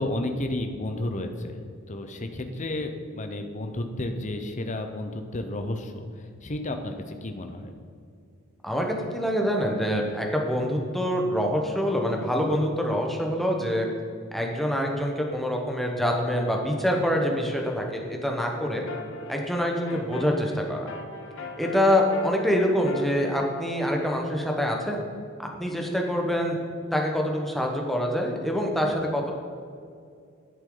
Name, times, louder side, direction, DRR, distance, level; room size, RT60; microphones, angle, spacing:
voice 1, 0.0-7.7, left 1 dB, 35° left, 6 dB, 0.8 m, -32 dB
voice 2, 8.6-13.9 14.3-18.8 19.3-20.9 21.6-25.0 25.6-26.6 26.9-29.4, equal, ahead, 0 dB, 1.1 m, -25 dB
sound 1, 18.6-23.8, left 2 dB, 65° left, 0.9 m, -40 dB
11.0 x 8.1 x 3.9 m, 2.3 s
head